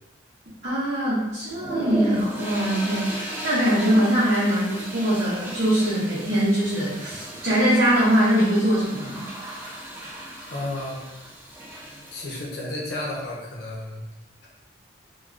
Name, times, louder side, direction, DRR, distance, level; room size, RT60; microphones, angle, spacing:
voice 1, 0.6-9.2, equal, 55° right, -10 dB, 0.8 m, -22 dB
sound 1, 1.5-12.5, right 1 dB, 10° right, 0.4 m, -35 dB
voice 2, 10.5-11.0 12.1-14.0, left 1 dB, 55° left, -4 dB, 0.7 m, -32 dB
3.3 x 2.3 x 2.4 m, 1.0 s
head